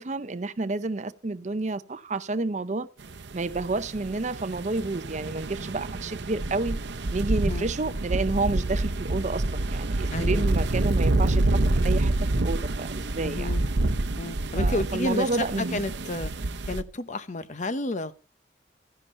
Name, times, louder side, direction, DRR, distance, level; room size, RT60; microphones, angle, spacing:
voice 1, 0.0-2.9 3.3-6.8 7.1-11.6 11.8-13.5 14.5-15.8, right 3 dB, 40° right, 0.6 m, -30 dB
sound 1, 3.1-16.8, right 2 dB, 75° right, 0.8 m, -27 dB
voice 2, 10.1-10.5 13.2-13.7 14.2-16.3 16.7-18.1, left 2 dB, 40° left, 0.8 m, -31 dB
14.0 x 11.0 x 4.3 m
head